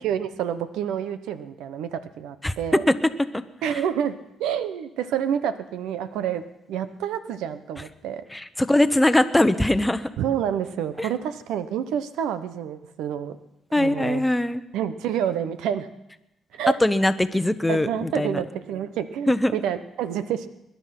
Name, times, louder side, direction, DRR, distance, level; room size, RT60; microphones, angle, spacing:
voice 1, 0.0-2.8 3.6-6.4 6.7-8.2 10.2-13.4 13.8-14.2 14.7-15.9 16.5-16.8 17.7-20.5, right 9 dB, 90° right, 12 dB, 0.9 m, -28 dB
voice 2, 3.3-3.8 8.3-10.1 11.0-11.1 13.7-14.6 16.8-18.4 19.3-19.6, left 1 dB, 10° left, 10 dB, 0.9 m, -21 dB
21.5 x 11.0 x 5.9 m, 0.85 s
cardioid pair, 90°, 0 cm